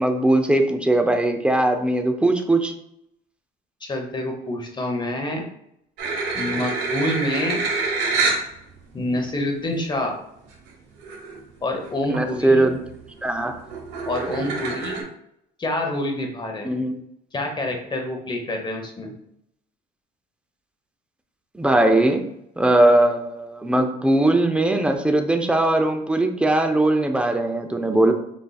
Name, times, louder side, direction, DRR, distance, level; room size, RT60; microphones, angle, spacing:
voice 1, 0.0-2.7 12.1-12.8 13.2-13.6 16.6-17.0 21.5-22.2 22.6-28.1, right 1 dB, 5° right, 5 dB, 0.5 m, -20 dB
voice 2, 3.8-5.5 6.3-7.7 8.9-10.2 11.6-12.7 14.1-15.1 15.6-16.7 17.3-19.1, left 1 dB, 25° left, 3 dB, 1.0 m, -27 dB
sound 1, 6.0-8.5 9.2-9.3 10.7-10.8 11.0-11.4 11.8-12.3 12.7-15.0, right 4 dB, 80° right, 1.1 m, -26 dB
4.6 x 4.1 x 2.3 m, 0.76 s
cardioid pair, 110°, 17 cm